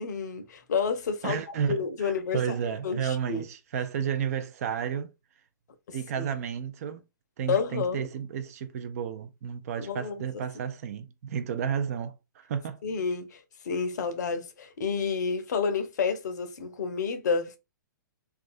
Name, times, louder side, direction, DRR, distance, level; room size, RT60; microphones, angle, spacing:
voice 1, 0.0-1.4 1.7-2.6 2.8-3.4 5.9-6.3 7.5-8.1 9.8-10.2 12.8-13.4 13.6-17.6, left 5 dB, 60° left, 0.6 m, -30 dB
voice 2, 1.2-5.1 5.9-7.0 7.4-12.8, right 8 dB, 45° right, 0.4 m, -32 dB
2.4 x 2.3 x 2.6 m
figure-of-eight pair, 115°, 11 cm